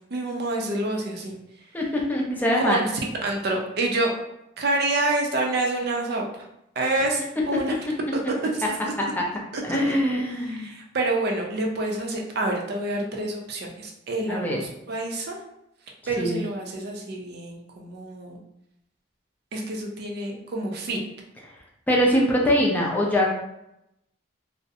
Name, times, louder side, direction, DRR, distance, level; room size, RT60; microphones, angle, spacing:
voice 1, 0.1-1.7 2.5-2.9 3.2-4.1 4.6-6.5 6.8-7.9 8.4-8.9 9.5-9.8 10.3-15.4 16.1-18.4 19.5-21.0, right 2 dB, 55° right, 1 dB, 0.4 m, -28 dB
voice 2, 1.7-2.8 9.7-10.7 14.3-14.6 16.2-16.4 21.9-23.4, equal, 10° left, -2 dB, 0.4 m, -23 dB
2.4 x 2.0 x 2.6 m, 0.83 s
head